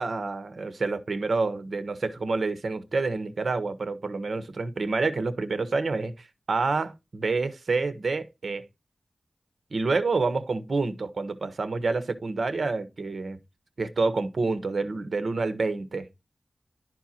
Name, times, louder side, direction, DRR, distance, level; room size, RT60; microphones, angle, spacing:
voice 1, 0.0-6.1 6.5-8.6 9.7-13.4 13.8-16.1, right 3 dB, 75° right, 1.3 m, -28 dB
11.5 x 4.6 x 4.3 m
cardioid pair, 55°, 0 cm